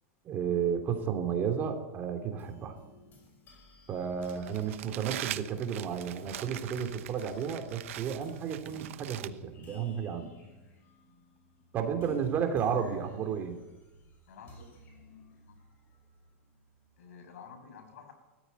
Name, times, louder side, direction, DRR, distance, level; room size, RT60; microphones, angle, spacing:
voice 1, 0.2-2.8 3.9-10.3 11.7-13.6, right 7 dB, 25° right, 5 dB, 3.0 m, -32 dB
sound 1, 2.2-17.0, equal, 25° left, 5.9 m, -55 dB
Crumpling crinkling, 4.2-9.3, right 14 dB, 65° right, 1.0 m, -42 dB
voice 2, 14.3-14.8 15.5-15.6 17.0-18.1, left 6 dB, 80° left, 6 dB, 7.0 m, -50 dB
20.5 x 14.5 x 9.5 m, 1.1 s
supercardioid pair, 155°, 8 cm